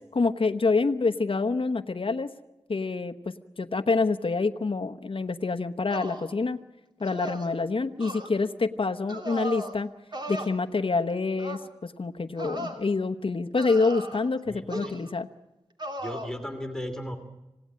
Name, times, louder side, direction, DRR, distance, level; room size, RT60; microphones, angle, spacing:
voice 1, 0.1-2.3 2.7-6.6 7.0-9.9 10.3-15.3, left 3 dB, 55° left, 6 dB, 1.0 m, -27 dB
sound 1, 5.9-6.3 7.0-7.5 8.0-8.3 9.1-9.7 10.1-10.5 11.4-11.7 12.4-12.8 13.6-14.3 14.7-15.1 15.8-16.3, right 1 dB, 40° right, 3.0 m, -36 dB
voice 2, 14.5-14.9 16.0-17.2, left 1 dB, 5° left, 5 dB, 2.8 m, -36 dB
26.5 x 17.5 x 8.7 m, 1.0 s
wide cardioid pair, 70°, 11 cm